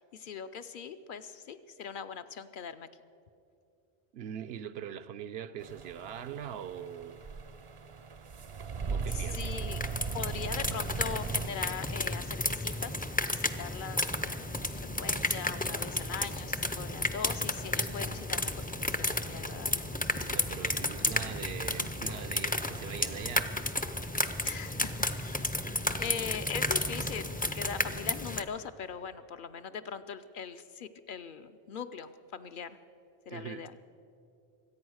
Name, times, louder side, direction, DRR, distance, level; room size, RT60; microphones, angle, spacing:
voice 1, 0.0-2.9 9.1-9.8 10.1-13.0 13.3-19.9 24.4-32.8 33.3-33.7, left 7 dB, 60° left, 0.7 m, -41 dB
voice 2, 4.1-7.2 8.9-9.7 20.3-23.5 33.3-33.7, right 9 dB, 80° right, 0.8 m, -42 dB
sound 1, 5.6-11.5, right 5 dB, 40° right, 0.5 m, -38 dB
sound 2, 9.1-28.4, left 1 dB, 15° left, 0.4 m, -33 dB
24.5 x 8.7 x 6.3 m
omnidirectional pair, 1.0 m